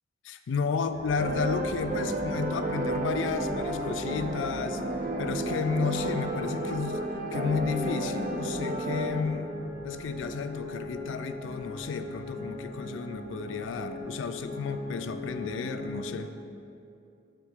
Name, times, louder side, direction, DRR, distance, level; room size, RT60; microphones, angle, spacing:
voice 1, 0.2-4.8 5.2-7.0 7.3-9.6 9.8-16.3, left 5 dB, 85° left, 10 dB, 0.3 m, -32 dB
sound 1, 0.9-16.1, left 1 dB, 15° right, 1.1 m, -40 dB
sound 2, 1.2-9.2, right 1 dB, 45° right, 0.4 m, -32 dB
6.8 x 3.6 x 4.6 m, 2.6 s
head